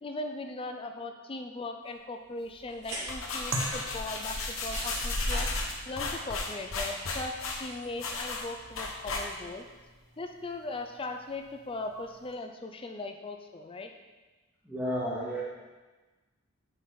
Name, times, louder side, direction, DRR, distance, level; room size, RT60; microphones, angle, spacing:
voice 1, 0.0-5.5 5.9-9.7 10.2-13.9, left 2 dB, 25° left, 5 dB, 0.5 m, -39 dB
sound 1, 2.7-9.6, left 3 dB, 75° left, 1.2 m, -34 dB
sound 2, 2.7-8.7, right 1 dB, 55° right, 2.5 m, -44 dB
sound 3, 3.5-12.3, right 1 dB, 80° right, 1.1 m, -44 dB
voice 2, 14.7-15.4, equal, 5° right, -7 dB, 2.1 m, -32 dB
9.3 x 5.3 x 4.0 m, 1.2 s
head